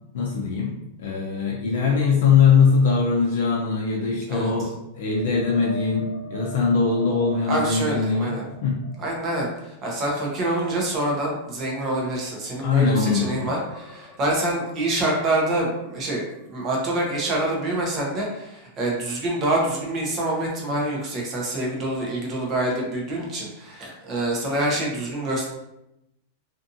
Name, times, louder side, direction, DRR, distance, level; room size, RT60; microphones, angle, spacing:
voice 1, 0.1-8.8 12.6-13.5, left 5 dB, 60° left, -2 dB, 0.5 m, -21 dB
sound 1, 5.0-12.4 12.8-16.7 17.0-17.3 20.6-20.7, left 1 dB, 20° left, 0.8 m, -44 dB
voice 2, 7.5-8.4 9.0-25.4, right 1 dB, 25° right, -2 dB, 0.7 m, -26 dB
2.6 x 2.5 x 2.6 m, 0.87 s
supercardioid pair, 165°, 0 cm